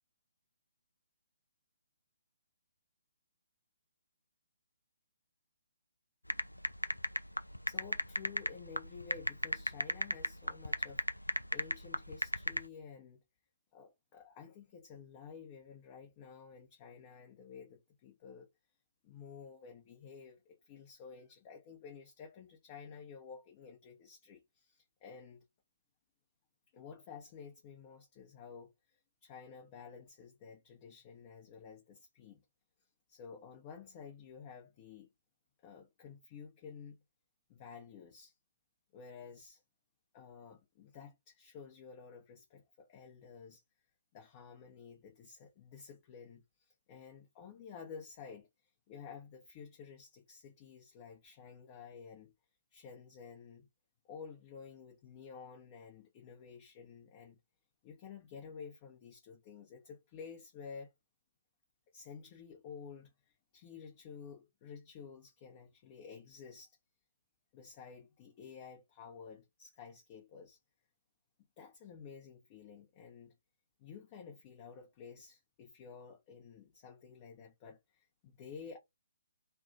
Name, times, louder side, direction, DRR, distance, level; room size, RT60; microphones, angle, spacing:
sound 1, 6.3-12.6, left 1 dB, 90° left, 0.3 m, -34 dB
voice 1, 7.7-13.2 13.7-18.5 19.0-25.4 26.7-32.4 33.1-35.1 35.6-37.0 37.5-38.4 38.9-39.6 40.1-43.6 44.1-52.3 52.7-53.7 54.1-57.4 57.8-60.9 61.9-66.8 67.5-70.6 71.6-73.3 73.8-78.8, left 6 dB, 30° left, 0.7 m, -52 dB
2.3 x 2.2 x 2.6 m
figure-of-eight pair, 135°, 0 cm